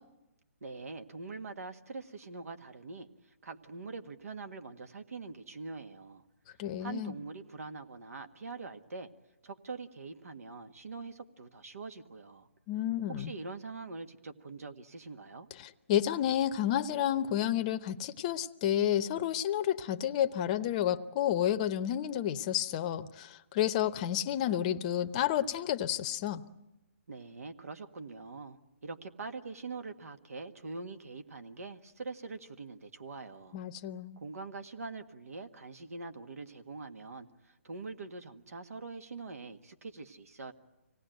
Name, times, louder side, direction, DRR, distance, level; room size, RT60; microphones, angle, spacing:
voice 1, 0.6-3.1 3.4-6.2 6.8-9.1 9.4-12.5 13.1-15.5 27.1-33.6 34.2-40.5, right 3 dB, 75° right, 8 dB, 1.7 m, -44 dB
voice 2, 6.6-7.1 12.7-13.3 15.6-26.4 33.5-34.2, left 11 dB, 25° left, 10 dB, 0.8 m, -30 dB
25.5 x 18.5 x 9.2 m, 0.98 s
hypercardioid pair, 155°, 8 cm